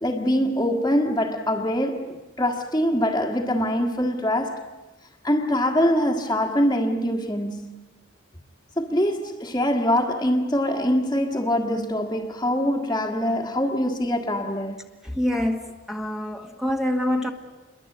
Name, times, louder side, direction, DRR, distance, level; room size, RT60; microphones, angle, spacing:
voice 1, 0.0-4.6 5.2-7.8 8.8-14.8, equal, 15° left, 1.6 m, -24 dB
voice 2, 15.0-17.3, left 1 dB, 5° right, 1.4 m, -26 dB
28.0 x 22.5 x 8.5 m
head